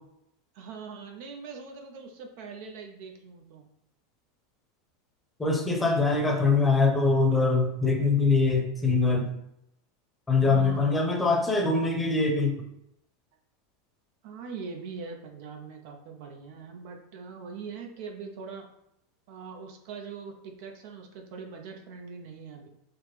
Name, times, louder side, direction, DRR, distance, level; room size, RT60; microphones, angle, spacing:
voice 1, 0.5-3.6 10.4-11.1 14.2-18.7 19.3-22.7, right 5 dB, 60° right, 3 dB, 0.5 m, -42 dB
voice 2, 5.4-9.3 10.3-12.6, left 3 dB, 15° left, 2 dB, 0.7 m, -23 dB
3.2 x 2.1 x 3.2 m, 0.79 s
hypercardioid pair, 95°, 0 cm